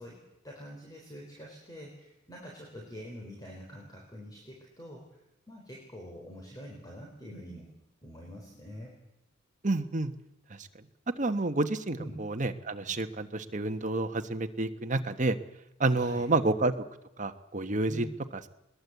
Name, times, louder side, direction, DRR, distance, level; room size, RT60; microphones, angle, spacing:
voice 1, 0.0-5.2 5.5-7.7 8.0-9.0 12.0-12.2 15.9-16.3 17.9-18.1, equal, 20° left, -1 dB, 4.3 m, -45 dB
voice 2, 9.6-10.1 11.2-15.4 15.8-16.7 17.2-18.1, right 2 dB, 40° right, 8 dB, 1.2 m, -29 dB
21.0 x 20.5 x 8.2 m, 0.88 s
head